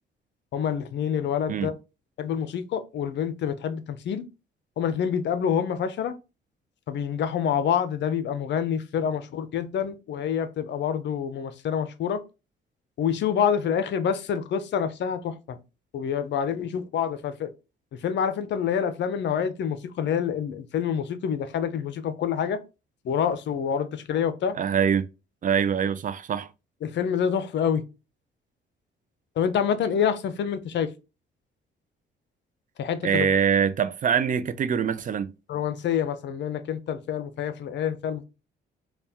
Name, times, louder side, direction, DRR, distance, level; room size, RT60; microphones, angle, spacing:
voice 1, 0.5-1.7 2.2-4.2 4.8-6.1 6.9-12.2 13.0-15.6 15.9-17.5 18.0-22.6 23.0-24.5 26.8-27.8 29.4-30.9 32.8-33.3 35.5-38.2, left 8 dB, 65° left, 0.6 m, -27 dB
voice 2, 24.5-25.1 25.4-26.5 33.0-35.3, right 7 dB, 40° right, 0.4 m, -24 dB
4.1 x 2.3 x 3.4 m
cardioid pair, 90°, 20 cm